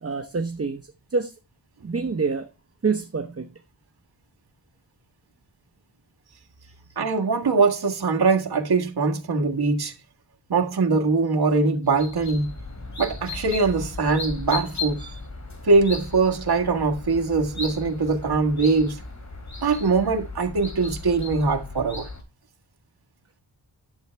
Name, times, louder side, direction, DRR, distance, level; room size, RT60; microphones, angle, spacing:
voice 1, 0.0-1.3 1.8-2.5 2.8-3.5 6.6-6.7, right 4 dB, 35° right, 0.9 m, -27 dB
voice 2, 7.0-9.9 10.5-12.5 13.0-15.2 15.7-19.0 19.6-22.1, right 4 dB, 60° right, 1.8 m, -22 dB
sound 1, 11.8-22.2, left 4 dB, 40° left, 3.1 m, -36 dB
11.5 x 7.1 x 3.4 m
wide cardioid pair, 70°, 43 cm